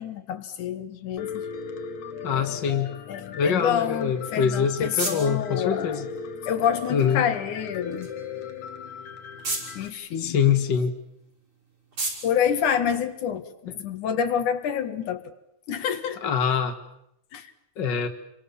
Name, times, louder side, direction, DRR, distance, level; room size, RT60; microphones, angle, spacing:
voice 1, 0.0-1.5 2.3-2.8 3.1-6.0 6.5-8.1 9.8-10.4 12.2-15.3 15.7-16.3 17.3-17.5, left 8 dB, 85° left, 8 dB, 3.2 m, -28 dB
Piano, 1.2-9.9, left 6 dB, 70° left, 2.8 m, -37 dB
voice 2, 2.2-2.9 3.4-6.1 6.9-7.2 10.2-10.9 13.7-13.8 16.2-16.8 17.8-18.1, left 7 dB, 40° left, 7 dB, 2.4 m, -24 dB
sound 1, 4.2-13.6, right 2 dB, 40° right, 6.9 m, -39 dB
29.5 x 24.0 x 7.1 m, 0.78 s
omnidirectional pair, 3.4 m